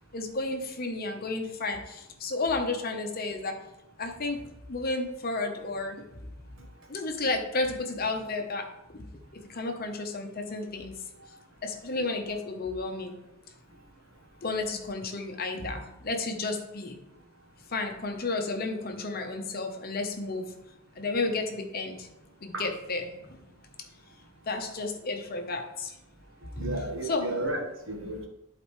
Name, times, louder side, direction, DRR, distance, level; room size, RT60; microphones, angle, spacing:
voice 1, 0.1-3.6 4.0-6.0 6.9-9.0 9.5-10.9 11.6-13.1 14.4-17.0 17.7-20.5 20.9-22.1 22.4-23.4 24.5-25.9 26.4-27.3, left 3 dB, 45° left, 4 dB, 0.9 m, -32 dB
voice 2, 26.6-28.3, right 2 dB, 65° right, 1 dB, 1.4 m, -33 dB
11.5 x 4.2 x 3.2 m, 0.91 s
head